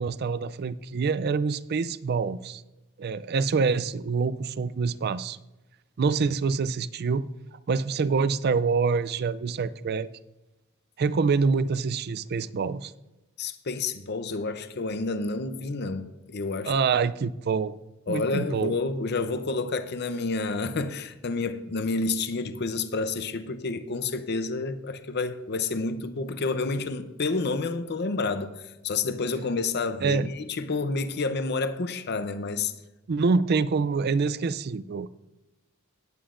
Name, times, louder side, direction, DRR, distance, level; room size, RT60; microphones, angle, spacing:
voice 1, 0.0-2.6 3.0-5.4 6.0-7.3 7.7-10.1 11.0-12.9 16.6-17.8 18.1-18.8 30.0-30.3 33.1-35.1, right 5 dB, 50° right, 0.4 m, -26 dB
voice 2, 13.4-16.7 18.1-28.5 28.8-32.7, left 3 dB, 55° left, 0.7 m, -29 dB
17.0 x 9.1 x 2.5 m
head